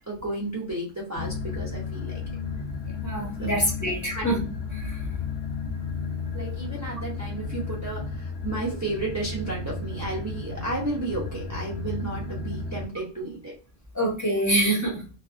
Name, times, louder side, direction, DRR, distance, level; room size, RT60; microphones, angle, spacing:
voice 1, 0.1-2.2 3.2-3.5 4.1-4.3 6.3-13.5, right 2 dB, 20° right, -5 dB, 0.5 m, -33 dB
sound 1, 1.1-12.9, left 4 dB, 65° left, 0.9 m, -33 dB
voice 2, 3.0-4.4 4.7-5.0 13.9-15.0, right 1 dB, 15° left, -4 dB, 0.8 m, -25 dB
2.4 x 2.3 x 2.4 m, 0.35 s
omnidirectional pair, 1.2 m